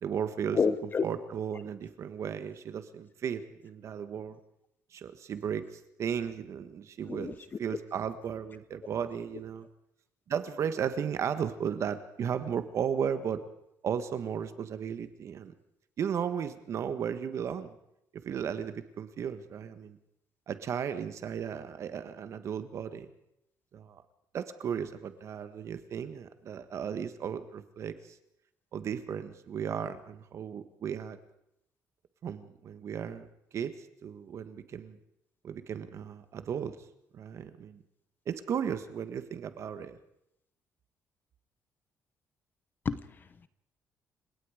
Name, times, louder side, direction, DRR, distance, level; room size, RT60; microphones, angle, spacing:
voice 1, 0.0-0.6 1.0-4.4 4.9-9.7 10.3-13.4 13.8-15.5 16.0-17.8 18.1-20.0 20.5-23.1 23.7-24.0 24.3-28.2 28.7-31.2 32.2-33.3 33.5-35.0 35.4-36.8 37.1-37.8 38.2-40.0, right 8 dB, 50° right, 11 dB, 1.6 m, -35 dB
voice 2, 0.5-1.0 7.1-7.3 42.8-43.5, left 5 dB, 30° left, 15 dB, 0.9 m, -29 dB
29.5 x 17.5 x 5.1 m, 0.78 s
cardioid pair, 140°, 6 cm